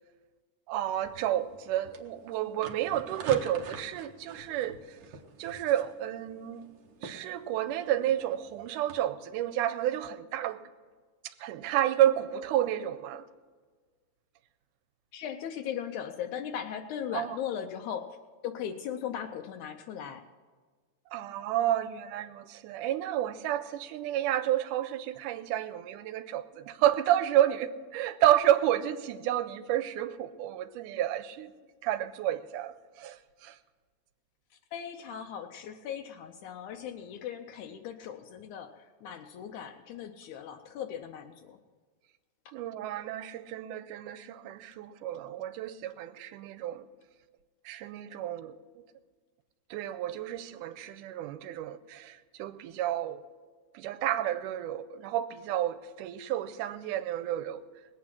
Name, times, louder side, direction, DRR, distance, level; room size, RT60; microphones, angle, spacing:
voice 1, 0.7-5.0 5.4-6.8 7.0-10.6 11.4-13.3 17.1-17.4 21.1-31.5 31.8-33.6 42.5-46.9 47.7-48.8 49.7-53.2 53.7-57.6, right 12 dB, 90° right, 2.2 m, -30 dB
sound 1, 1.1-9.0, right 4 dB, 70° right, 1.1 m, -46 dB
voice 2, 15.1-18.2 18.4-20.2 34.7-41.6, left 9 dB, 80° left, 2.0 m, -38 dB
19.5 x 8.6 x 5.9 m
omnidirectional pair, 3.6 m